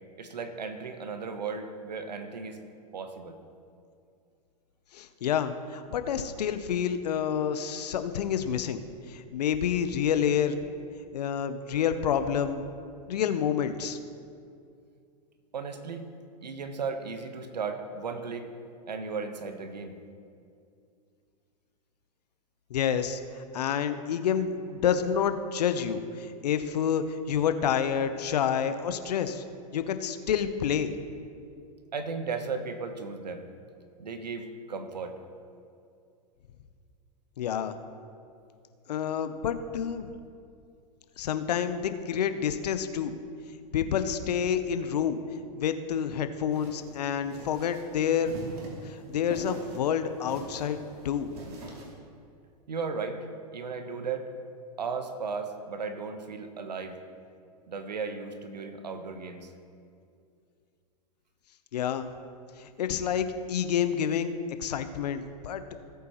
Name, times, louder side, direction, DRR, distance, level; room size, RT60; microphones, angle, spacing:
voice 1, 0.2-2.6 2.9-3.4 15.5-16.1 16.4-18.5 18.9-20.0 31.9-33.5 34.0-35.2 52.7-53.2 53.5-54.3 54.8-57.0 57.7-59.5, right 5 dB, 85° right, 8 dB, 1.1 m, -35 dB
voice 2, 4.9-8.8 9.1-10.6 11.1-12.6 13.1-14.0 22.7-23.2 23.5-29.4 29.7-30.9 37.4-37.7 38.9-40.0 41.2-43.1 43.7-45.2 45.5-48.3 48.8-50.8 51.0-51.3 61.7-62.1 62.6-65.6, left 8 dB, 70° left, 10 dB, 0.8 m, -28 dB
sound 1, 46.5-51.9, right 2 dB, 65° right, 3.1 m, -44 dB
18.0 x 8.4 x 3.0 m, 2.4 s
hypercardioid pair, 105°, 21 cm